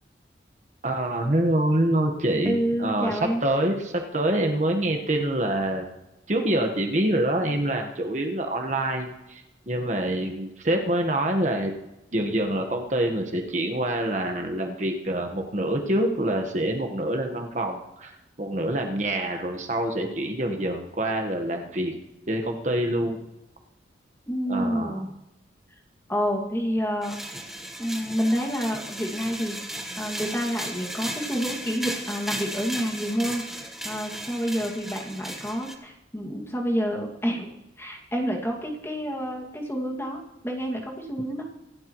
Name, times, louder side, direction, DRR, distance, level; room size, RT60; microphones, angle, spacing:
voice 1, 0.8-5.9 6.3-11.7 12.1-18.1 18.4-21.9 22.3-23.2 24.5-25.0, right 1 dB, 40° right, 3 dB, 1.3 m, -26 dB
voice 2, 2.5-3.4 24.3-25.1 26.1-27.2 27.8-29.6 30.0-41.4, equal, 15° left, 0 dB, 2.1 m, -28 dB
sound 1, 27.0-35.7, right 1 dB, ahead, 1.2 m, -36 dB
25.5 x 11.5 x 3.1 m, 0.97 s
head